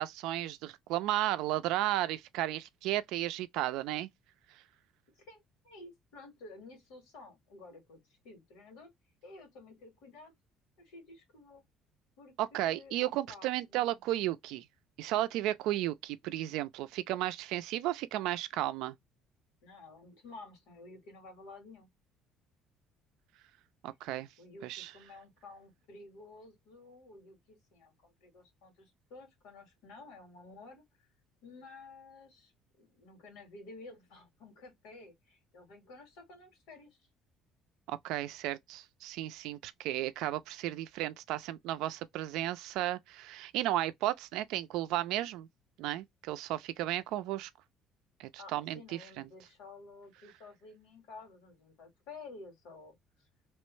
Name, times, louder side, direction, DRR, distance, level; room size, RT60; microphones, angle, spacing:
voice 1, 0.0-4.1 12.4-14.7 15.0-18.9 23.8-24.3 24.6-24.9 37.9-45.5 45.8-47.5 48.2-49.3, right 14 dB, 85° right, 0.4 m, -34 dB
voice 2, 5.1-8.0 8.2-8.9 9.2-10.3 10.8-11.6 12.2-14.0 19.6-21.9 24.4-31.1 31.4-32.5 32.8-37.0 48.4-53.0, left 3 dB, 90° left, 1.8 m, -52 dB
3.0 x 2.1 x 3.1 m
cardioid pair, 125°, 0 cm